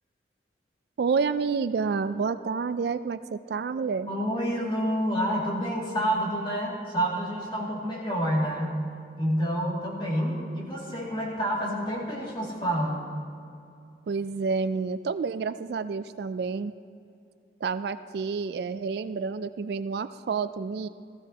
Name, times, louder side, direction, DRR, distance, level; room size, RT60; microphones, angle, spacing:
voice 1, 1.0-4.1 14.1-16.7 17.6-20.9, right 5 dB, 60° right, 12 dB, 0.3 m, -29 dB
voice 2, 4.1-8.7 9.2-13.1, equal, 25° left, -4 dB, 2.3 m, -28 dB
15.5 x 15.0 x 2.9 m, 2.5 s
head